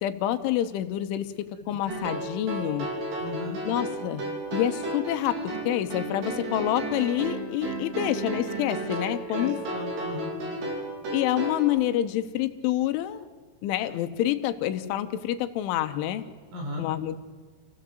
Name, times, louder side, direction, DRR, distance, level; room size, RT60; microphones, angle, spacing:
voice 1, 0.0-2.9 3.6-4.3 4.5-9.6 11.1-13.2 13.6-16.3 16.8-17.2, left 12 dB, 80° left, 9 dB, 3.3 m, -27 dB
sound 1, 1.9-11.6, right 1 dB, 55° right, 5.4 m, -33 dB
voice 2, 3.2-3.6 9.0-10.4 16.5-16.9, left 1 dB, 85° right, 0 dB, 8.0 m, -37 dB
28.0 x 16.0 x 7.8 m, 1.5 s
omnidirectional pair, 5.7 m